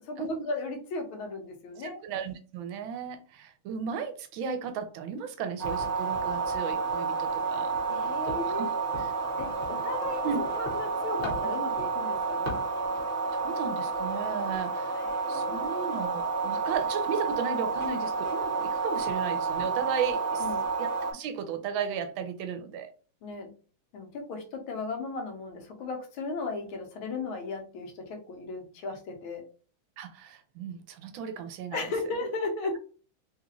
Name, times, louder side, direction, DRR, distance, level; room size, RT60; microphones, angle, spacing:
voice 1, 0.0-2.0 7.9-8.7 9.4-12.6 15.0-15.7 20.4-20.7 23.2-23.5 23.9-29.4 31.7-32.8, left 3 dB, 90° left, 1.7 m, -36 dB
voice 2, 1.8-7.7 8.2-8.7 9.0-9.1 10.2-10.4 11.4-11.5 13.3-15.0 15.3-20.5 20.8-22.9 30.0-31.9, right 6 dB, 80° right, 1.3 m, -35 dB
sound 1, 5.6-21.1, right 4 dB, 30° right, 0.9 m, -30 dB
3.8 x 2.4 x 2.9 m
omnidirectional pair, 2.2 m